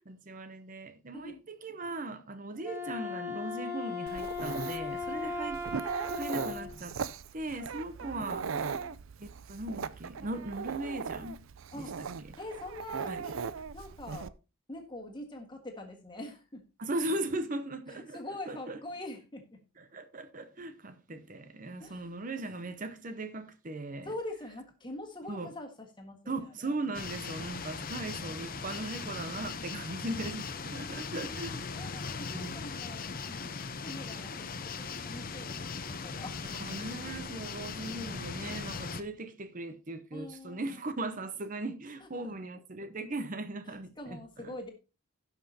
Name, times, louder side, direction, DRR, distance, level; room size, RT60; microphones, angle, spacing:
voice 1, 0.0-7.0 7.3-8.7 9.2-11.4 11.7-11.8 12.3-12.4 13.1-13.2 16.8-18.2 18.5-18.8 19.8-24.1 25.3-25.5 26.3-31.5 32.3-32.6 36.5-44.5, right 2 dB, 40° right, 0.7 m, -38 dB
Wind instrument woodwind instrument, 2.6-6.7, left 4 dB, 10° right, 2.4 m, -37 dB
Dog, 4.1-14.3, right 6 dB, 70° right, 0.5 m, -39 dB
voice 2, 8.0-9.0 11.7-12.0 12.4-13.4 13.7-14.3 14.7-16.6 17.9-19.6 21.8-22.2 24.0-26.7 30.9-33.5 33.8-36.6 40.1-40.9 42.0-42.4 43.6-44.7, left 1 dB, 20° left, 1.6 m, -44 dB
sound 1, 26.9-39.0, left 5 dB, 40° left, 0.7 m, -39 dB
17.0 x 5.8 x 2.8 m
head